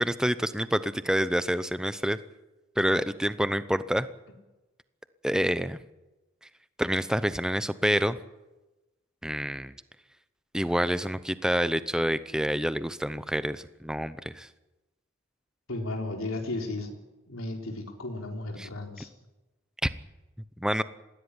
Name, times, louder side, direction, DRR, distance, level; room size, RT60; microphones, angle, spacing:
voice 1, 0.0-2.2 2.8-4.1 5.2-5.8 6.8-8.2 9.2-9.7 10.5-14.5 18.6-18.7 19.8-19.9 20.6-20.8, equal, 5° right, 13 dB, 0.7 m, -27 dB
voice 2, 15.7-16.9 17.3-19.1, left 2 dB, 85° left, 2 dB, 3.8 m, -34 dB
20.0 x 16.0 x 10.0 m, 1.1 s
head